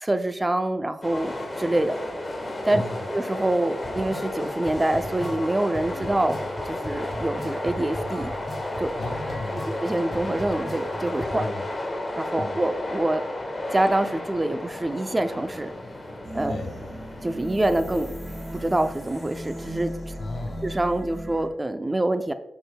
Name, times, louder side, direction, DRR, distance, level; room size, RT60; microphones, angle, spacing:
voice 1, 0.0-1.9 2.7-2.8 3.1-6.4 6.7-8.3 8.8-8.9 9.8-11.5 12.2-13.2 13.7-15.7 16.3-16.5 17.2-18.1 18.5-19.9 20.6-22.3, right 1 dB, 20° right, 9 dB, 0.4 m, -25 dB
sound 1, 1.0-20.8, left 1 dB, 25° left, 1.4 m, -34 dB
voice 2, 2.7-3.1 8.9-9.7 11.4-11.6 12.4-12.6 16.5-16.7 20.2-20.6, left 2 dB, 80° left, 4 dB, 1.5 m, -34 dB
sound 2, 3.8-11.5, equal, 5° left, 2.7 m, -37 dB
sound 3, 16.2-21.5, equal, 35° right, 2.1 m, -36 dB
10.0 x 6.1 x 2.2 m, 0.91 s
wide cardioid pair, 110°, 0 cm